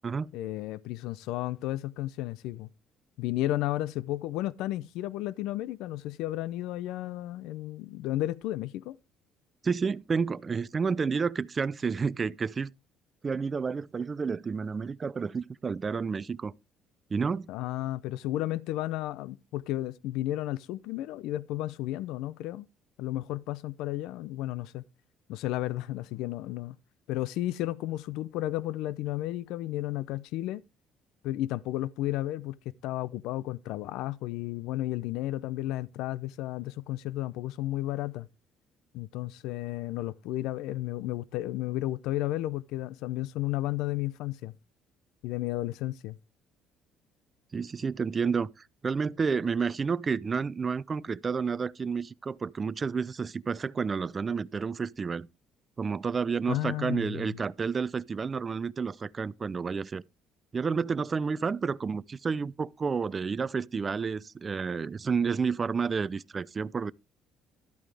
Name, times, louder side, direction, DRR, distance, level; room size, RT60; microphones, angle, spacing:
voice 1, 0.3-2.7 3.2-9.0 17.5-22.7 23.0-24.8 25.3-26.8 27.1-30.6 31.2-32.6 32.8-38.3 38.9-44.5 45.2-46.2 56.5-57.4, left 15 dB, 80° left, 0.5 m, -33 dB
voice 2, 9.6-12.7 13.2-16.5 17.1-17.5 47.5-48.5 48.8-55.3 55.8-60.0 60.5-66.9, right 5 dB, 35° right, 0.5 m, -30 dB
13.0 x 8.9 x 3.3 m
supercardioid pair, 70°, 0 cm